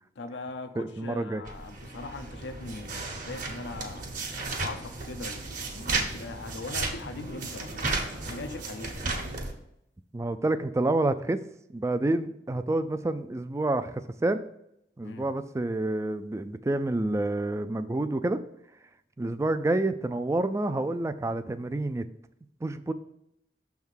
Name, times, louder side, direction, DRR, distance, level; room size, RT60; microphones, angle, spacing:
voice 1, 0.2-4.1 4.6-9.3 15.0-15.3, left 3 dB, 85° left, 0.6 m, -41 dB
voice 2, 0.8-1.4 10.1-11.4 11.7-14.4 15.0-18.4 19.2-22.0 22.6-22.9, right 2 dB, 15° right, 0.3 m, -28 dB
sound 1, 1.5-9.5, right 3 dB, 50° right, 1.1 m, -34 dB
6.5 x 3.5 x 6.2 m
head